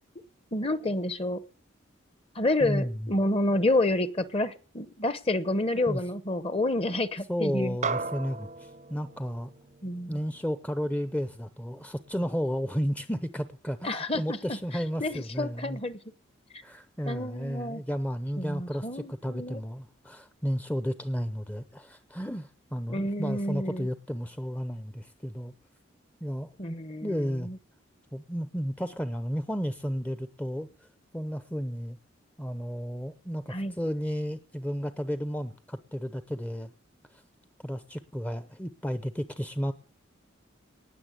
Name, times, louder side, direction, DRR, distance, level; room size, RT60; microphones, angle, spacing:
voice 1, 0.5-1.4 2.3-7.8 9.8-10.2 13.8-14.6 15.0-16.0 17.1-17.8 18.4-19.6 22.9-23.9 26.6-27.6 33.5-33.7, left 1 dB, 30° left, 1.0 m, -29 dB
voice 2, 2.6-3.1 5.8-6.0 7.3-9.5 10.1-15.8 16.6-25.5 26.2-26.8 27.0-27.5 28.1-30.9 31.1-32.0 32.4-36.7 37.1-37.2 37.6-39.7, equal, 5° left, 0.7 m, -33 dB
sound 1, 7.8-12.5, right 4 dB, 35° right, 0.6 m, -38 dB
19.5 x 7.1 x 9.7 m
head